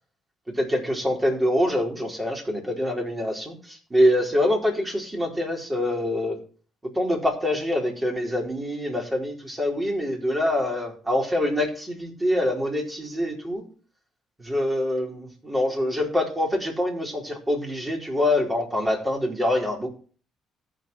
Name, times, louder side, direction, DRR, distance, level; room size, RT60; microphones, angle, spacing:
voice 1, 0.5-6.4 6.9-13.6 14.4-19.9, left 1 dB, 20° right, 0 dB, 4.6 m, -25 dB
14.5 x 5.3 x 5.6 m, 0.42 s
hypercardioid pair, 50°, 0 cm